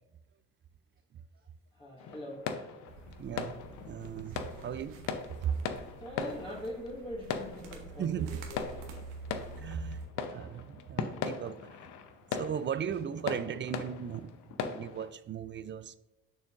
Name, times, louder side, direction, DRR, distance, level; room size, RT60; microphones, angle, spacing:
voice 1, 1.7-2.4 4.4-4.7 6.0-8.9 11.1-11.3, left 1 dB, 15° left, 2.0 m, -43 dB
sound 1, 2.0-15.1, left 6 dB, 70° left, 0.7 m, -40 dB
sound 2, 2.9-10.1, right 3 dB, 85° right, 1.1 m, -47 dB
voice 2, 3.2-5.0 5.4-5.6 8.0-8.4 9.6-11.5 12.3-14.3 14.6-16.0, right 8 dB, 35° right, 0.4 m, -37 dB
7.0 x 6.0 x 2.5 m
supercardioid pair, 65°, 33 cm